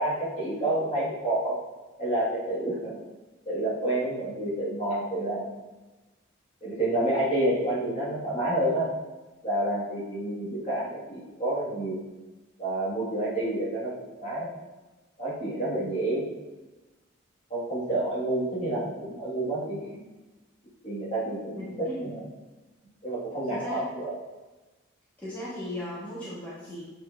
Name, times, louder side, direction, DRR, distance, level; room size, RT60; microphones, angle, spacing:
voice 1, 0.0-1.6 2.0-3.0 3.5-5.5 6.6-8.9 9.4-12.0 12.6-14.5 15.2-16.3 17.5-19.8 20.8-22.2 23.0-24.1, right 1 dB, 30° left, -8 dB, 2.1 m, -29 dB
voice 2, 21.5-22.0 23.5-23.8 25.2-26.8, left 1 dB, 10° left, -11 dB, 1.8 m, -37 dB
7.8 x 5.0 x 2.7 m, 1.1 s
head